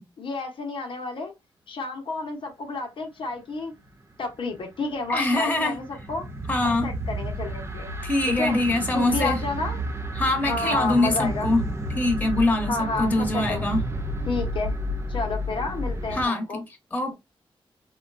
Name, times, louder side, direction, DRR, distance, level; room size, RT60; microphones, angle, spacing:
voice 1, 0.2-1.3 1.7-3.7 4.2-6.3 6.6-7.9 8.3-8.6 8.9-9.8 10.4-11.5 12.7-13.7 14.3-14.8 15.1-16.6 17.1-17.2, left 3 dB, 65° left, 0.8 m, -30 dB
sound 1, 4.5-16.3, equal, 30° right, 0.6 m, -31 dB
voice 2, 5.1-5.7 6.5-6.9 8.0-9.4 10.1-11.6 11.9-13.8 16.1-16.6 16.9-17.1, left 2 dB, 15° left, 1.1 m, -23 dB
3.7 x 2.2 x 2.4 m
cardioid pair, 85°, 9 cm